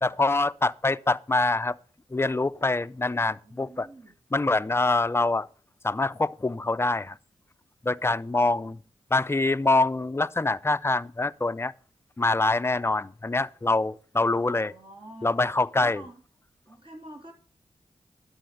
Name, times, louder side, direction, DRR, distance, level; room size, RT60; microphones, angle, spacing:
voice 1, 0.0-1.8 2.1-3.9 4.3-5.5 5.8-7.2 7.8-8.8 9.1-11.7 12.2-14.7 15.2-16.0, left 2 dB, 20° left, 0.5 m, -25 dB
voice 2, 3.4-4.1 14.1-16.2 16.7-17.3, right 1 dB, 45° right, 3.2 m, -48 dB
11.0 x 4.2 x 7.8 m
cardioid pair, 40°, 12 cm